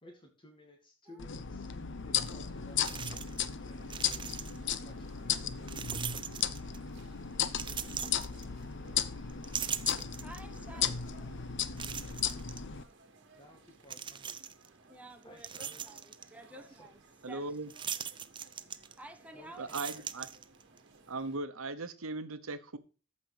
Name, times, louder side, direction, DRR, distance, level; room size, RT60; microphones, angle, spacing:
voice 1, 0.0-4.3 4.8-6.9 10.7-11.1 13.4-14.4 15.2-15.9 16.5-16.9 19.3-20.0, left 1 dB, 25° left, 2.2 m, -57 dB
sound 1, 1.2-12.8, left 8 dB, 60° left, 0.8 m, -35 dB
sound 2, 1.8-21.4, right 3 dB, 60° right, 1.9 m, -62 dB
sound 3, 2.3-2.4 2.8-3.5 3.8-4.8 5.7-6.9 7.5-8.9 9.3-10.6 11.1-11.2 11.8-12.6 13.8-14.7 15.2-16.3 17.7-19.2 19.5-20.8, right 8 dB, 25° right, 0.6 m, -40 dB
voice 2, 10.2-11.5 14.9-17.0 17.3-17.6 19.0-19.9, right 2 dB, 5° right, 1.3 m, -51 dB
voice 3, 17.2-17.7 19.6-20.3 21.1-22.8, right 3 dB, 80° right, 1.0 m, -38 dB
14.0 x 5.4 x 5.0 m
head